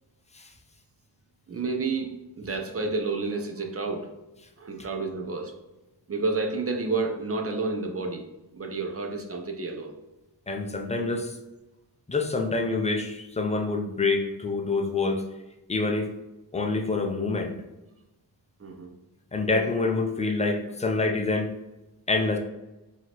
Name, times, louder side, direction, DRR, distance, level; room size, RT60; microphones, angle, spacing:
voice 1, 1.5-4.1 4.6-5.5 6.1-8.3 8.5-10.0 18.6-18.9, right 3 dB, 35° right, 4 dB, 0.6 m, -30 dB
voice 2, 10.5-11.4 12.1-15.2 15.7-16.1 16.5-17.5 19.3-21.5 22.1-22.4, left 3 dB, 15° left, 3 dB, 0.5 m, -26 dB
4.6 x 2.8 x 3.0 m, 1.0 s
wide cardioid pair, 105°, 42 cm